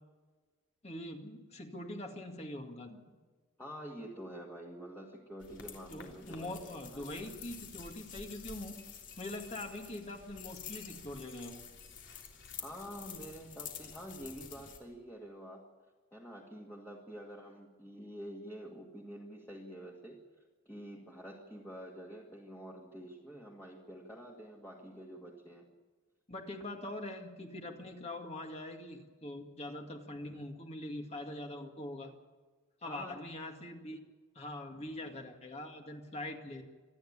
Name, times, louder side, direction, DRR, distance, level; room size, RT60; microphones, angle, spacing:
voice 1, 0.8-3.0 5.9-8.8 9.2-11.6 26.3-32.1 32.8-34.0 34.4-36.6, left 1 dB, 30° left, 3 dB, 2.1 m, -43 dB
voice 2, 3.6-7.3 12.6-15.7 16.1-20.2 20.7-25.7 32.8-33.2, equal, 10° left, -3 dB, 2.2 m, -47 dB
sound 1, 5.4-14.8, left 7 dB, 60° left, 3.4 m, -49 dB
27.5 x 10.5 x 8.8 m, 1.3 s
head